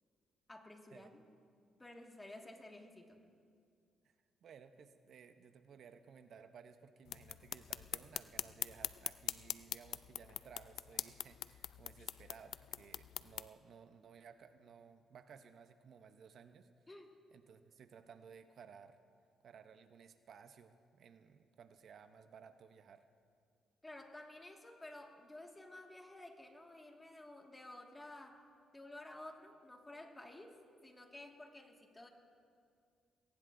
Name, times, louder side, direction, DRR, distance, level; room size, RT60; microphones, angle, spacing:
voice 1, 0.5-1.2 1.8-3.2 16.9-17.1 23.8-28.4 28.7-32.1, left 1 dB, 15° left, 2 dB, 1.8 m, -53 dB
voice 2, 4.4-16.7 17.3-19.0 19.4-23.0, right 6 dB, 60° right, 9 dB, 0.7 m, -58 dB
sound 1, 7.1-13.5, left 11 dB, 75° left, 0.3 m, -43 dB
21.5 x 18.5 x 2.6 m, 2.3 s
cardioid pair, 90°, 0 cm